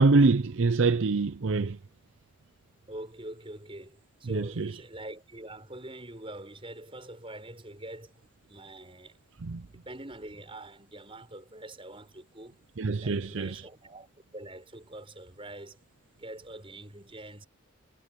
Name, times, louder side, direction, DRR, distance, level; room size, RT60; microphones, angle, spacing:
voice 1, 0.0-1.8 4.2-4.8 9.4-9.7 12.8-13.6, right 3 dB, 60° right, 0.6 m, -25 dB
voice 2, 2.9-8.1 8.5-9.2 9.7-12.6 13.0-14.1 14.3-15.8 16.1-17.5, right 1 dB, 25° right, 6.5 m, -44 dB
head